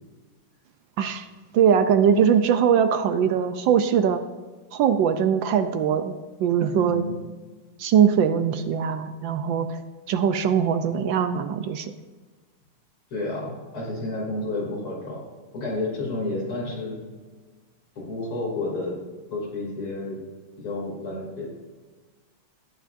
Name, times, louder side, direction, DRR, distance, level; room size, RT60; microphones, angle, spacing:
voice 1, 1.5-4.2 4.7-7.1 7.8-9.8 10.1-11.9, right 8 dB, 70° right, 9 dB, 1.3 m, -21 dB
voice 2, 6.7-7.1 13.1-15.2 15.5-17.0 18.0-19.0 19.3-20.2 20.6-21.5, left 2 dB, 80° left, -3 dB, 3.7 m, -30 dB
18.0 x 6.7 x 2.6 m, 1.4 s
omnidirectional pair, 2.3 m